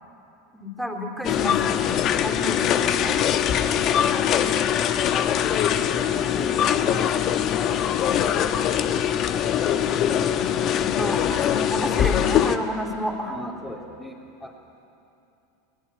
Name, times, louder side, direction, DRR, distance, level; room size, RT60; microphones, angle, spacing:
voice 1, 0.5-2.0 2.2-3.2 8.0-8.4 10.3-13.5, left 1 dB, ahead, 0 dB, 3.7 m, -31 dB
sound 1, 1.2-12.6, left 9 dB, 45° left, 1.2 m, -22 dB
voice 2, 3.6-4.0 6.3-6.6 6.8-6.9 13.3-14.1 14.4-14.5, left 1 dB, 15° left, -3 dB, 3.2 m, -38 dB
23.0 x 18.5 x 9.8 m, 2.7 s
hypercardioid pair, 90°, 0 cm